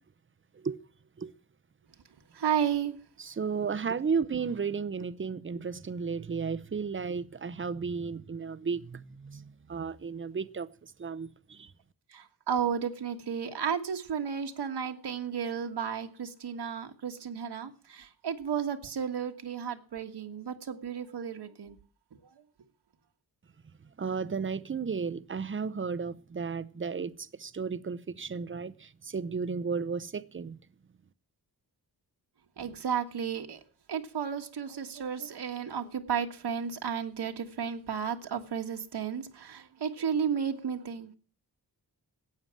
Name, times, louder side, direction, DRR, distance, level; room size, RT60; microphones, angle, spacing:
voice 1, 2.3-3.0 12.1-21.8 22.2-22.3 32.6-33.6 33.9-41.1, right 7 dB, 80° right, 1.6 m, -33 dB
voice 2, 3.2-10.7 11.0-11.7 24.0-30.6, right 5 dB, 30° right, 0.7 m, -34 dB
13.0 x 8.8 x 7.5 m
wide cardioid pair, 115°, 40 cm